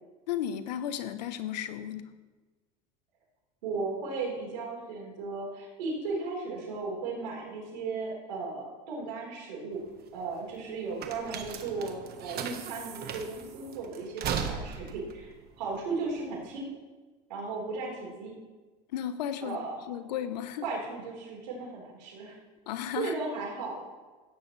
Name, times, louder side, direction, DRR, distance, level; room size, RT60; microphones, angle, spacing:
voice 1, 0.3-2.1 18.9-19.6 19.9-20.7 22.7-23.2, left 10 dB, 85° left, 11 dB, 0.9 m, -34 dB
voice 2, 3.6-9.8 10.1-15.3 15.6-16.7 17.3-18.3 19.4-19.8 20.6-22.3 23.0-23.8, right 3 dB, 85° right, -3 dB, 4.3 m, -36 dB
sound 1, 9.7-16.5, right 7 dB, 50° right, 1.3 m, -38 dB
15.5 x 9.7 x 3.3 m, 1.3 s
hypercardioid pair, 90°, 21 cm